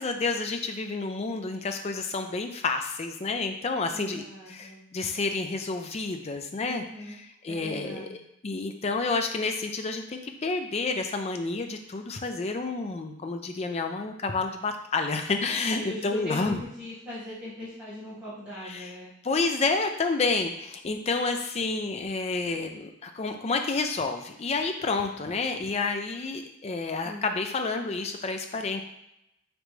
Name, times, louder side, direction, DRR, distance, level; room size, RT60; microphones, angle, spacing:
voice 1, 0.0-6.8 7.4-8.2 8.4-16.6 18.6-18.9 19.2-28.8, left 3 dB, 30° left, 5 dB, 0.4 m, -29 dB
voice 2, 3.9-4.8 6.6-7.2 7.5-8.1 15.5-19.1 27.0-27.4, left 1 dB, 5° right, -13 dB, 1.5 m, -40 dB
5.0 x 3.3 x 3.1 m, 0.82 s
head